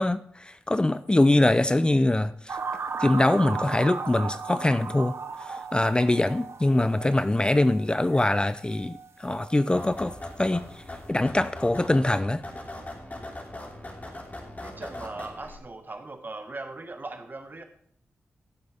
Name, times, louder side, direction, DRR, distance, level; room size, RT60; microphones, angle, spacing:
voice 1, 0.0-2.6 3.0-5.1 5.4-10.8 11.1-12.4, left 1 dB, 20° left, 0.5 m, -23 dB
sound 1, 2.5-9.7 10.0-10.3, right 5 dB, 65° right, 1.0 m, -37 dB
sound 2, 9.7-15.6, left 1 dB, 35° left, 2.9 m, -40 dB
voice 2, 14.6-17.6, right 2 dB, 45° right, 1.6 m, -39 dB
15.0 x 7.8 x 3.5 m
cardioid pair, 45°, 5 cm